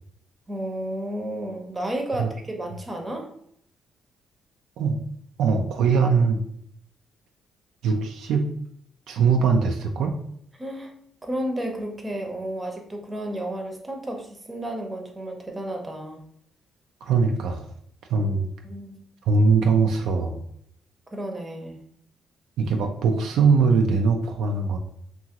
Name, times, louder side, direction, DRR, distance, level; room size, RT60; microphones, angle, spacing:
voice 1, 0.5-3.3 10.6-10.9 11.2-16.2 18.6-19.0 21.1-21.8, right 1 dB, 20° right, 2 dB, 0.6 m, -32 dB
voice 2, 5.4-6.4 7.8-8.5 9.1-10.2 17.0-17.6 18.1-18.5 19.3-20.4 22.6-24.8, right 5 dB, 80° right, 3 dB, 0.3 m, -21 dB
2.8 x 2.4 x 2.8 m, 0.66 s
cardioid pair, 90°, 0 cm